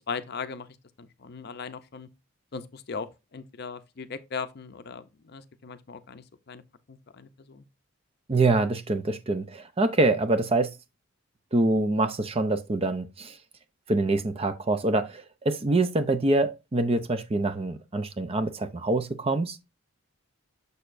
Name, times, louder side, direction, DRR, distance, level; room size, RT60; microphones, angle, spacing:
voice 1, 0.1-0.7 1.0-2.1 2.5-6.6 6.9-7.6, left 5 dB, 50° left, 0.5 m, -38 dB
voice 2, 8.3-10.7 11.5-13.4 13.9-19.6, right 2 dB, 25° right, 0.5 m, -25 dB
6.7 x 6.5 x 2.5 m
head